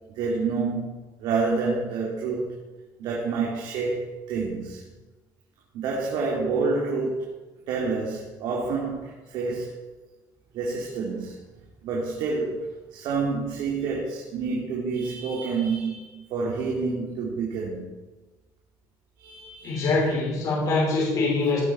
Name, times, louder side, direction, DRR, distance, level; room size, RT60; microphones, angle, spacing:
voice 1, 0.1-2.6 3.0-4.8 5.7-7.3 7.7-9.8 10.5-11.4 11.8-17.9 19.2-20.2, right 4 dB, 70° right, -3 dB, 2.6 m, -28 dB
voice 2, 19.6-21.6, left 3 dB, 50° left, -4 dB, 4.7 m, -24 dB
17.0 x 8.8 x 4.3 m, 1.2 s
cardioid pair, 150°, 8 cm